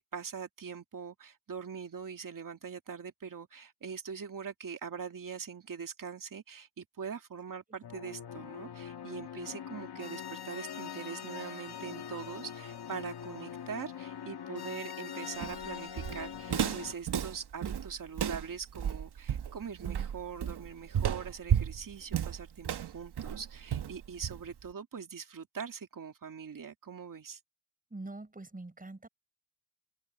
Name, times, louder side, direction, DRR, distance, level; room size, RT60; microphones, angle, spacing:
voice 1, 0.0-27.4, right 6 dB, 55° right, 2.5 m, -42 dB
sound 1, 7.8-16.9, left 8 dB, 70° left, 2.1 m, -43 dB
Walk footsteps, 15.4-24.7, right 8 dB, 75° right, 1.5 m, -33 dB
voice 2, 27.9-29.1, right 2 dB, 20° right, 6.1 m, -44 dB
open air
wide cardioid pair, 100°, 40 cm